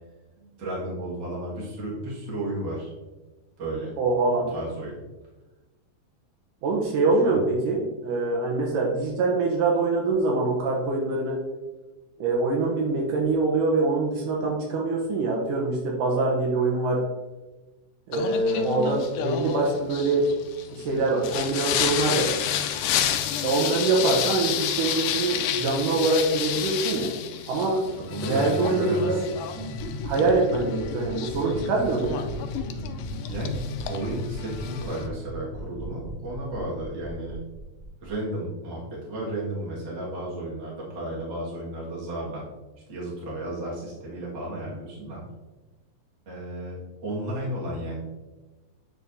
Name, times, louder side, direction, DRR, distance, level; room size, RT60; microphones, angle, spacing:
voice 1, 0.4-2.9 3.6-3.9 4.5-5.0 7.2-7.4 27.9-29.2 33.3-37.4 38.0-42.4 42.9-45.2 46.3-48.0, right 1 dB, 40° right, -5 dB, 2.1 m, -33 dB
voice 2, 4.0-4.5 6.6-11.4 12.2-17.0 18.1-20.2 20.7-22.3 23.4-27.1 27.5-27.8 28.3-29.2 30.0-32.2, right 3 dB, 75° right, -1 dB, 2.4 m, -24 dB
Singing, 18.1-35.1, left 9 dB, 85° left, 2.2 m, -30 dB
sound 1, 29.5-38.1, left 1 dB, 35° left, 0.4 m, -36 dB
9.3 x 5.0 x 2.7 m, 1.2 s
omnidirectional pair, 3.9 m